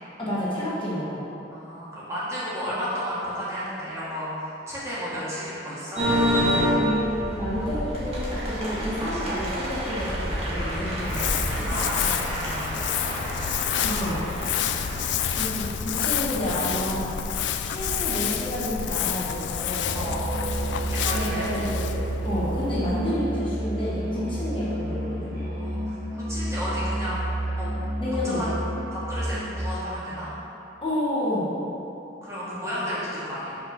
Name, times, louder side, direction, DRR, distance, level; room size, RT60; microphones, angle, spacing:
voice 1, 0.2-1.2 6.7-11.7 13.8-14.2 15.4-17.0 17.6-20.0 21.1-21.8 22.2-25.3 28.0-28.4 30.8-31.5, left 1 dB, 30° left, -8 dB, 1.3 m, -30 dB
voice 2, 1.5-6.0 9.0-9.4 11.7-13.5 14.6-15.3 19.9-20.5 20.9-21.5 24.2-24.3 25.4-27.2 27.5-27.7 28.2-28.5 28.9-30.3 32.2-33.5, equal, 15° right, -9 dB, 1.5 m, -33 dB
sound 1, 6.0-15.8, equal, 35° right, 1.3 m, -28 dB
Crumpling crinkling, 10.9-23.4, left 9 dB, 75° left, 0.3 m, -29 dB
Musical instrument, 19.8-29.7, right 1 dB, 50° right, 1.3 m, -30 dB
5.4 x 4.3 x 5.9 m, 2.9 s
head